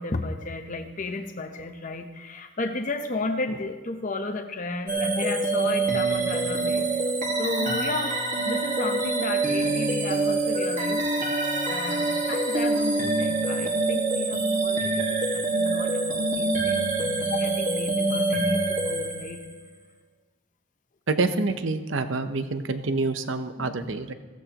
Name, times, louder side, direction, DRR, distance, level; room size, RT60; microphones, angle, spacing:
voice 1, 0.0-6.9 7.4-8.2 8.5-11.1 11.7-19.4 23.6-23.9, left 2 dB, 40° left, 5 dB, 0.8 m, -33 dB
sound 1, 4.9-19.6, right 2 dB, 40° right, 1.8 m, -25 dB
voice 2, 21.1-24.1, right 3 dB, 65° right, 10 dB, 0.8 m, -27 dB
15.5 x 14.5 x 3.0 m, 1.3 s
head